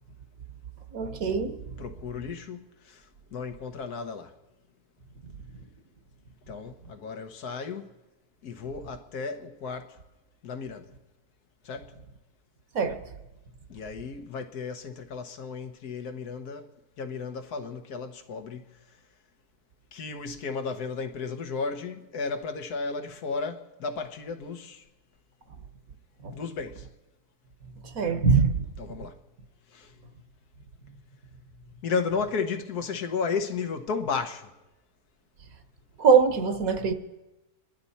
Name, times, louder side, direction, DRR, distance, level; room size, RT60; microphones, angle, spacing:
voice 1, 0.9-1.6 12.7-13.0 26.2-26.3 27.9-28.6 36.0-36.9, right 5 dB, 65° right, 1.5 m, -22 dB
voice 2, 1.8-3.0 3.3-4.3 6.5-7.9 8.4-10.0 10.4-10.9 11.7-11.9 13.7-16.7 17.0-18.7 19.9-24.8 26.3-26.9 28.1-28.2 28.8-29.2 29.7-29.9 31.8-34.5, left 5 dB, 90° left, 1.6 m, -34 dB
27.5 x 11.5 x 4.2 m
omnidirectional pair, 1.6 m